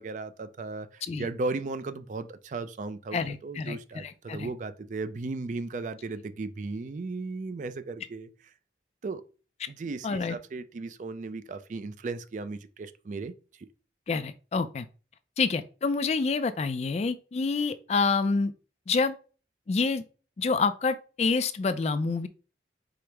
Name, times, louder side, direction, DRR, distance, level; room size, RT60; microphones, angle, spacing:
voice 1, 0.0-8.3 9.0-9.2 9.7-13.3, right 3 dB, 45° right, 0.4 m, -36 dB
voice 2, 3.1-4.5 9.6-9.7 10.0-10.4 14.1-14.9 15.4-18.5 18.9-19.2 19.7-20.0 20.4-22.3, left 4 dB, 40° left, 0.3 m, -27 dB
4.9 x 2.0 x 4.4 m
head